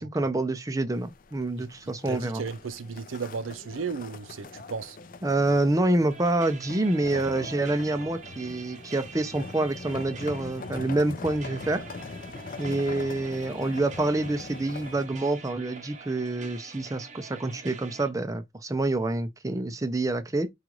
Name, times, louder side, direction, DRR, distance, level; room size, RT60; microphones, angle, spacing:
voice 1, 0.0-2.4 5.2-11.9 12.6-20.5, right 2 dB, 15° right, 0.4 m, -27 dB
sound 1, 0.9-15.1, left 3 dB, 45° left, 0.4 m, -42 dB
voice 2, 2.1-5.0, right 5 dB, 85° right, 0.5 m, -35 dB
sound 2, 6.1-18.1, right 5 dB, 35° right, 0.8 m, -46 dB
4.9 x 2.4 x 2.9 m
head